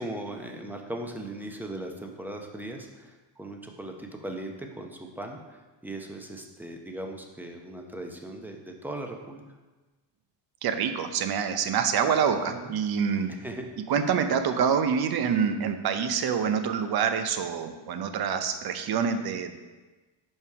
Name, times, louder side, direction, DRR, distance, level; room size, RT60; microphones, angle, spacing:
voice 1, 0.0-9.4 12.5-12.7 13.4-13.7, right 1 dB, 5° right, 2 dB, 0.7 m, -38 dB
voice 2, 10.6-13.3 13.9-19.5, right 7 dB, 55° right, 8 dB, 0.7 m, -26 dB
5.4 x 5.3 x 4.7 m, 1.2 s
cardioid pair, 115°, 45 cm